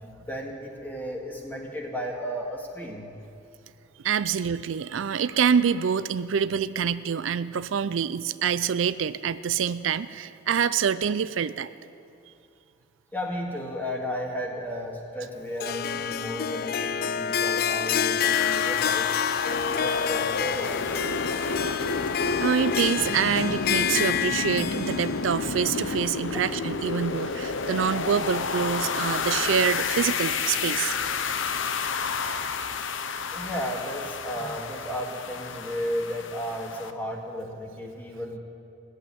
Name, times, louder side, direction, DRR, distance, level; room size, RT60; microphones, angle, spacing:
voice 1, 0.0-3.1 13.1-19.1 19.5-21.0 33.3-38.4, equal, 10° left, -1 dB, 2.0 m, -34 dB
voice 2, 4.0-11.7 21.3-21.9 22.4-30.9, right 7 dB, 85° right, 14 dB, 0.4 m, -26 dB
Harp, 15.6-26.8, left 7 dB, 50° left, 0.4 m, -28 dB
sound 1, 18.3-36.9, left 5 dB, 80° left, 0.7 m, -30 dB
17.0 x 8.2 x 9.9 m, 2.6 s
head